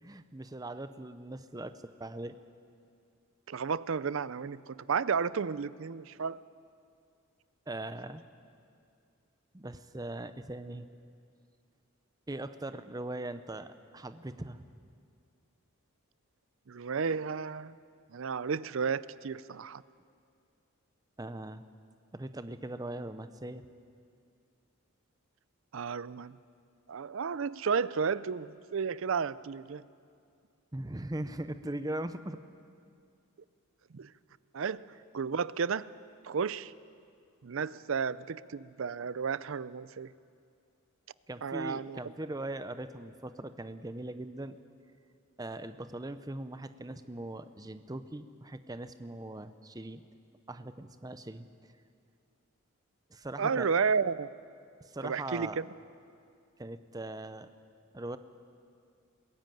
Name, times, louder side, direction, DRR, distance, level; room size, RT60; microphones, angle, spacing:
voice 1, 0.0-2.4 7.7-8.2 9.5-10.9 12.3-14.7 21.2-21.6 22.1-23.6 30.7-32.4 41.3-44.6 45.4-50.0 50.5-51.5 53.1-53.7 54.8-55.6 56.6-57.5 57.9-58.2, right 1 dB, 15° right, 11 dB, 0.7 m, -40 dB
voice 2, 3.5-6.4 16.7-17.7 18.1-19.8 25.7-26.4 26.9-29.8 33.9-34.1 34.5-34.9 35.1-35.9 36.2-36.7 37.4-40.1 41.4-42.1 53.4-54.3 55.0-55.7, right 5 dB, 60° right, 18 dB, 0.5 m, -32 dB
22.0 x 16.0 x 9.2 m, 2.3 s
head